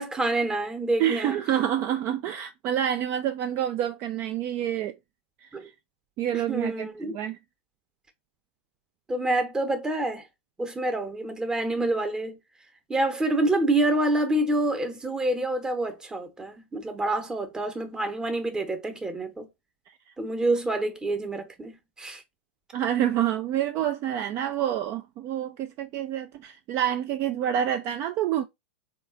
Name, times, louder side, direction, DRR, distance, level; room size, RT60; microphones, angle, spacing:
voice 1, 0.0-1.4 5.5-5.7 6.3-7.2 9.1-10.3 10.6-12.4 12.9-19.5 20.2-22.2, right 2 dB, 10° right, 0.8 m, -27 dB
voice 2, 1.0-5.0 5.4-5.5 6.2-7.4 22.7-28.4, right 10 dB, 40° right, 0.3 m, -27 dB
3.7 x 2.3 x 3.7 m
hypercardioid pair, 110°, 6 cm